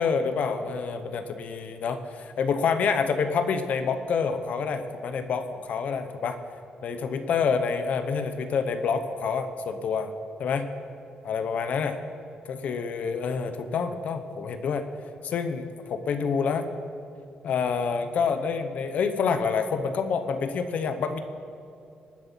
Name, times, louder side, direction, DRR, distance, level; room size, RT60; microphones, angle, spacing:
voice 1, 0.0-6.4 6.8-10.1 10.4-10.7 11.2-12.0 12.4-14.9 15.2-16.7 17.4-21.2, left 5 dB, 55° left, 9 dB, 0.8 m, -27 dB
20.0 x 7.5 x 5.7 m, 2.6 s
cardioid pair, 165°, 3 cm